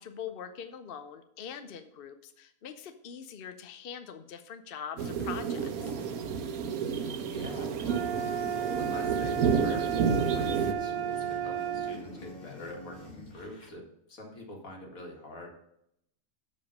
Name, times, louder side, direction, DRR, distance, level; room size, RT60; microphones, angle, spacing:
voice 1, 0.0-5.9, left 8 dB, 55° left, 8 dB, 0.7 m, -43 dB
sound 1, 5.0-10.7, right 6 dB, 85° right, 1.2 m, -30 dB
voice 2, 7.2-8.0 8.8-15.5, left 1 dB, 70° left, 0 dB, 2.3 m, -45 dB
sound 2, 7.8-12.0, right 9 dB, 40° right, 0.4 m, -33 dB
sound 3, 8.1-13.7, left 2 dB, 35° left, 1.2 m, -44 dB
7.0 x 5.3 x 6.4 m, 0.76 s
omnidirectional pair, 1.5 m